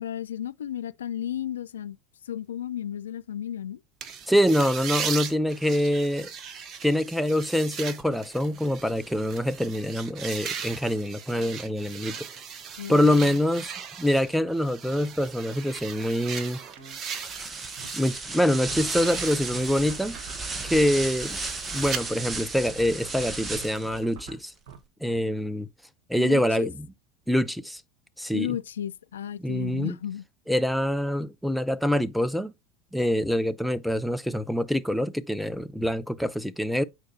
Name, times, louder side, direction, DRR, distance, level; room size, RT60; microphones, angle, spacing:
voice 1, 0.0-2.0 2.2-3.8 12.8-13.4 26.2-26.7 28.3-30.2, left 10 dB, 70° left, 0.3 m, -33 dB
sound 1, 4.0-18.2 18.6-22.0, right 7 dB, 35° right, 0.9 m, -38 dB
voice 2, 4.3-6.3 6.8-12.3 12.9-13.7 14.0-16.6 17.9-20.2 20.6-21.4 21.7-24.5 25.0-25.7 26.1-26.9 27.3-27.8 28.2-28.6 29.4-29.9 30.5-32.5 32.9-36.8, equal, ahead, 0.6 m, -25 dB
sound 2, 16.8-17.4 17.6-17.9 18.4-18.5 18.8-21.4 21.6-21.9 22.8-24.8, right 6 dB, 60° right, 1.3 m, -46 dB
sound 3, 17.1-24.0, right 3 dB, 20° right, 1.1 m, -34 dB
8.5 x 4.6 x 2.7 m
figure-of-eight pair, 75°, 0 cm